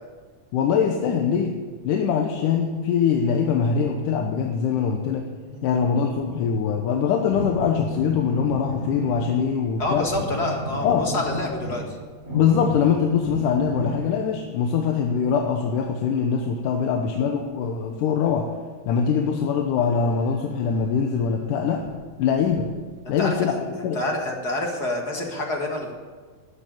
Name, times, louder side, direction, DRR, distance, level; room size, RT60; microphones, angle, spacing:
voice 1, 0.5-1.6 1.8-5.3 5.6-10.1 10.8-11.1 12.3-18.5 18.9-21.8 22.2-22.7 23.1-23.6 23.8-24.0, left 6 dB, 85° left, 2 dB, 2.5 m, -23 dB
sound 1, 6.2-6.6 7.3-9.5 9.7-14.0 20.2-20.3 20.7-20.9 21.2-21.3 21.8-22.0 22.3-23.3, left 1 dB, 20° right, 4.7 m, -33 dB
voice 2, 9.8-12.0 16.7-16.9 23.0-23.3 23.9-25.9, left 1 dB, 40° left, 1 dB, 1.7 m, -28 dB
14.0 x 8.9 x 8.9 m, 1.5 s
omnidirectional pair, 3.7 m